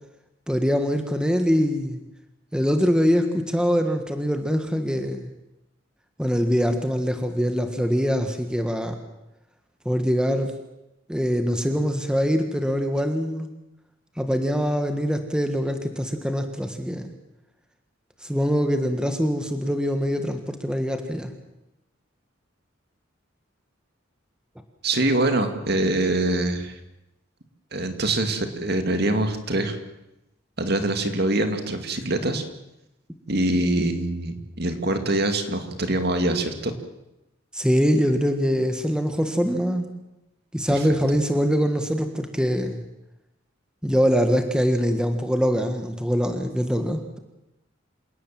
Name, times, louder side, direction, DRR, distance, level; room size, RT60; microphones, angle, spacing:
voice 1, 0.5-2.0 2.5-5.3 6.2-8.9 9.8-10.5 11.1-13.5 14.2-17.1 18.2-21.3 37.5-39.9 40.5-42.8 43.8-47.2, equal, 5° right, 6 dB, 1.6 m, -23 dB
voice 2, 24.8-26.8 27.7-29.8 30.6-32.4 33.3-36.7 40.7-40.8, right 2 dB, 50° right, 7 dB, 2.4 m, -24 dB
27.5 x 18.0 x 7.7 m, 0.92 s
head